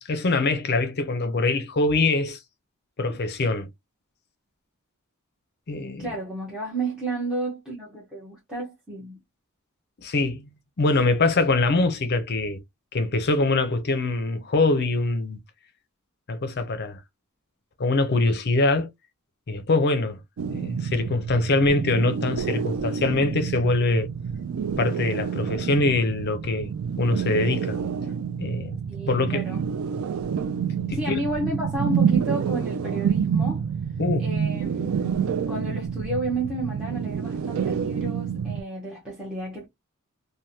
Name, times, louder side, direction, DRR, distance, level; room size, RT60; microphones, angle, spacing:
voice 1, 0.0-2.4 3.0-3.7 5.7-6.1 10.0-10.5 10.8-12.6 12.9-15.4 16.3-17.0 17.8-18.9 19.5-20.2 20.5-24.1 24.8-27.8 28.4-28.8 29.1-29.4 30.9-31.2 34.0-34.6, left 2 dB, 50° left, 0.6 m, -23 dB
voice 2, 6.0-9.2 28.9-29.6 30.9-33.6 34.2-39.7, right 1 dB, 5° right, 0.9 m, -32 dB
sound 1, 20.4-38.6, right 7 dB, 75° right, 0.3 m, -28 dB
3.3 x 2.2 x 2.7 m
head